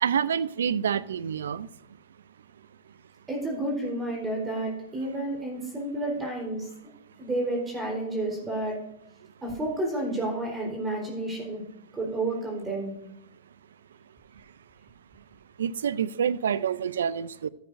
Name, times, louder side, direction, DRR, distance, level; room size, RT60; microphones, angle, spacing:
voice 1, 0.0-1.7 15.6-17.5, right 8 dB, 85° right, 0.4 m, -27 dB
voice 2, 3.3-6.7 7.2-8.8 9.4-11.6 11.9-12.9, right 2 dB, 20° right, 3.9 m, -30 dB
13.5 x 10.5 x 2.6 m
hypercardioid pair, 120°, 0 cm